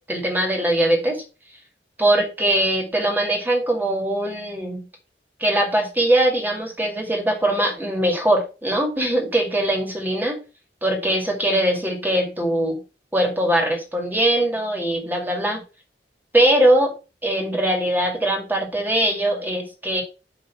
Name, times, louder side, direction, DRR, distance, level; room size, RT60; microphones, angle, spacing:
voice 1, 0.1-1.2 2.0-4.9 5.4-10.4 10.8-12.8 13.1-15.6 16.3-16.9 17.2-20.0, right 1 dB, 10° right, 1 dB, 2.3 m, -21 dB
7.1 x 3.7 x 5.8 m, 0.31 s
head